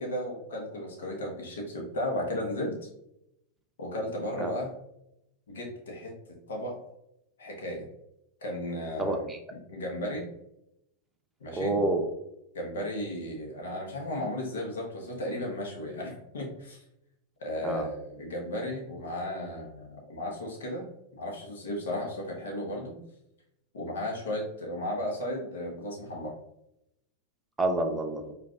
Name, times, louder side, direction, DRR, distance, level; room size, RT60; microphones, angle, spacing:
voice 1, 0.0-2.8 3.8-4.7 5.5-6.1 6.5-6.7 7.4-7.9 8.4-9.3 9.7-10.3 11.4-11.7 12.5-16.8 17.4-20.9 21.2-22.9 23.7-26.3, left 1 dB, 75° left, -1 dB, 1.1 m, -34 dB
voice 2, 9.0-9.4 11.6-12.0 17.6-17.9 27.6-28.3, right 2 dB, 10° right, 3 dB, 0.7 m, -28 dB
4.8 x 2.6 x 2.4 m, 0.82 s
hypercardioid pair, 95°, 0 cm